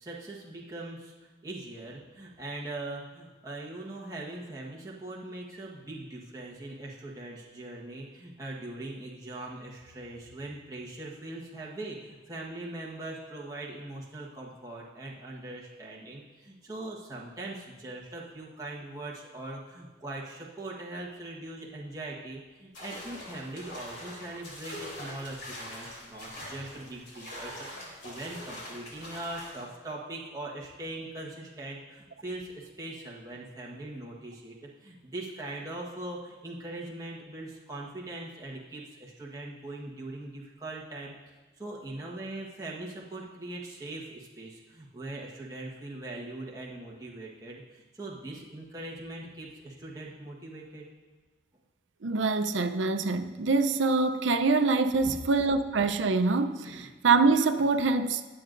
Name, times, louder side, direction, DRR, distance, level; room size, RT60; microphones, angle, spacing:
voice 1, 0.0-50.8 55.1-55.2 56.6-56.9, right 2 dB, 20° right, 1.3 m, -41 dB
sound 1, 22.7-29.6, left 1 dB, 75° left, 3.4 m, -43 dB
voice 2, 52.0-58.3, right 3 dB, 90° right, 0.6 m, -25 dB
21.5 x 7.8 x 2.6 m
head